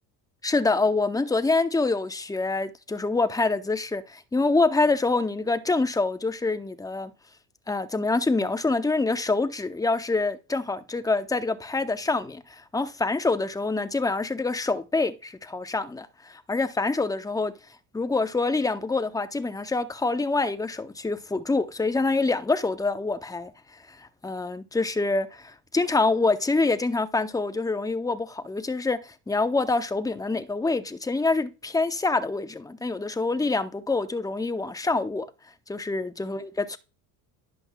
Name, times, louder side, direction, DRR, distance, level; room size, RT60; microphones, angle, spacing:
voice 1, 0.4-7.1 7.7-17.5 17.9-23.5 24.0-35.3 35.7-36.8, left 3 dB, 10° left, 0.7 m, -26 dB
10.5 x 7.7 x 2.2 m
supercardioid pair, 85°, 47 cm